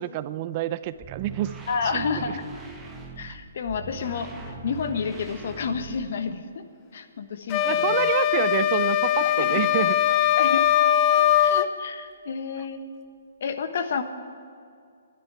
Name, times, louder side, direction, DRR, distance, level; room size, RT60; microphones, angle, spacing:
voice 1, 0.0-1.5 1.8-2.4 7.6-10.0, right 13 dB, 35° right, 14 dB, 0.6 m, -28 dB
sound 1, 0.8-6.3, right 5 dB, 10° right, 1.3 m, -41 dB
voice 2, 1.7-2.4 3.2-4.3 4.6-6.6 6.9-8.1 9.4-9.5 10.4-10.7 11.4-12.9 13.4-14.0, left 5 dB, 60° left, 8 dB, 1.3 m, -30 dB
sound 2, 7.5-11.7, left 11 dB, 25° left, 0.6 m, -21 dB
13.0 x 10.0 x 8.9 m, 2.3 s
hypercardioid pair, 145°, 0 cm